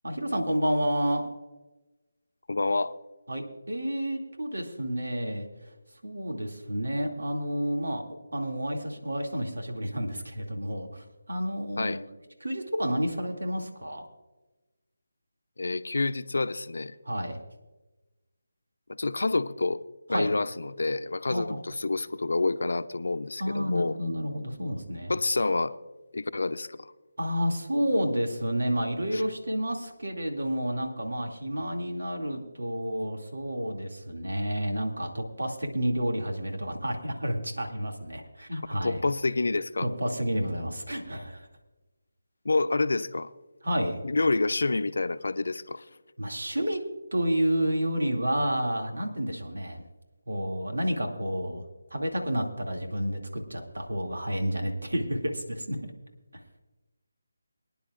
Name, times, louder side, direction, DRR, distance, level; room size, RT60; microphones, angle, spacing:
voice 1, 0.0-1.3 3.3-5.5 6.0-8.0 8.3-12.1 12.4-14.1 17.0-17.4 20.1-20.3 21.3-21.4 23.4-25.1 27.2-39.0 39.8-41.5 43.6-44.0 46.2-46.8 47.1-49.8 50.3-51.6 51.9-55.9, equal, 80° right, 2.4 m, -30 dB
voice 2, 2.5-3.0 11.8-12.0 15.6-16.9 19.0-19.8 20.1-24.0 25.1-25.8 26.1-26.9 29.1-29.2 38.8-39.9 42.4-43.3 44.0-45.8, left 3 dB, 70° left, 0.6 m, -28 dB
23.5 x 10.5 x 2.5 m
figure-of-eight pair, 160°, 0 cm